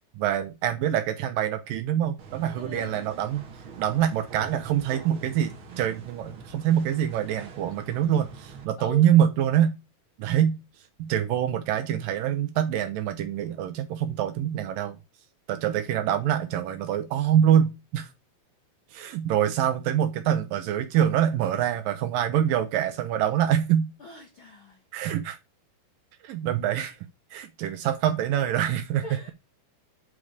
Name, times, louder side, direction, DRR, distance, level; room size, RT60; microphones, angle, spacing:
voice 1, 0.2-3.4 3.8-9.8 10.2-10.6 11.0-15.0 15.5-18.1 18.9-23.9 24.9-25.4 26.2-27.0 27.3-29.3, right 10 dB, 80° right, 2.2 m, -25 dB
sound 1, 2.2-8.6, right 5 dB, 60° right, 1.3 m, -45 dB
voice 2, 2.6-3.1 8.8-9.1 24.0-24.8 29.0-29.3, left 2 dB, 70° left, 1.2 m, -42 dB
8.6 x 4.8 x 6.5 m
omnidirectional pair, 4.5 m